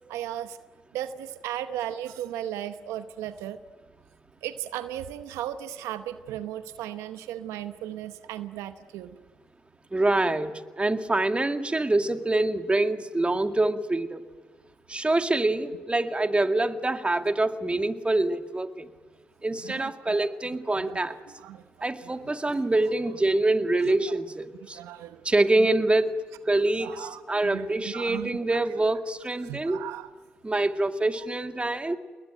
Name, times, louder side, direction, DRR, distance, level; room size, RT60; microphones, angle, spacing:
voice 1, 0.1-0.6 0.9-3.6 4.4-9.2 19.6-20.3 20.7-21.0 21.4-21.6 22.0-22.6 23.9-24.0 24.7-25.2 25.6-25.8 26.8-28.6 29.4-30.1, right 11 dB, 85° right, 11 dB, 0.9 m, -36 dB
voice 2, 9.9-14.2 14.9-18.9 19.4-21.2 21.8-24.8 25.2-29.9 30.4-32.0, right 2 dB, 25° right, 7 dB, 2.2 m, -25 dB
28.5 x 21.0 x 9.2 m, 1.5 s
hypercardioid pair, 40°, 5 cm